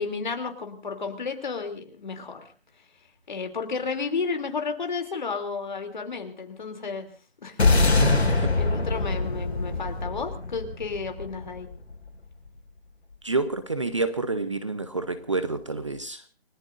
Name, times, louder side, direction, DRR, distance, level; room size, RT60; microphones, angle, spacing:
voice 1, 0.0-2.5 3.3-7.1 7.4-7.6 8.6-11.7, left 4 dB, 45° left, 6 dB, 3.0 m, -32 dB
sound 1, 7.6-12.0, left 3 dB, 75° left, 5.7 m, -23 dB
voice 2, 7.9-8.5 13.2-16.2, right 3 dB, 30° right, 12 dB, 0.8 m, -28 dB
29.5 x 18.5 x 2.6 m, 0.33 s
hypercardioid pair, 180°, 33 cm